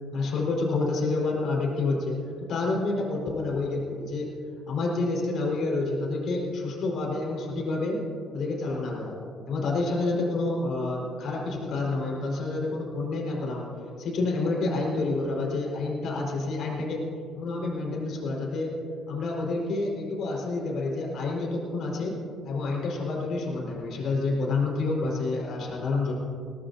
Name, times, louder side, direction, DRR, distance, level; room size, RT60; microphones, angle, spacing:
voice 1, 0.1-2.2 2.5-4.3 4.7-8.0 8.3-9.2 9.5-13.7 14.0-17.0 17.3-18.7 19.1-22.2 22.5-26.1, left 3 dB, 65° left, -2 dB, 4.8 m, -28 dB
21.0 x 19.5 x 2.8 m, 2.5 s
cardioid pair, 115°, 0 cm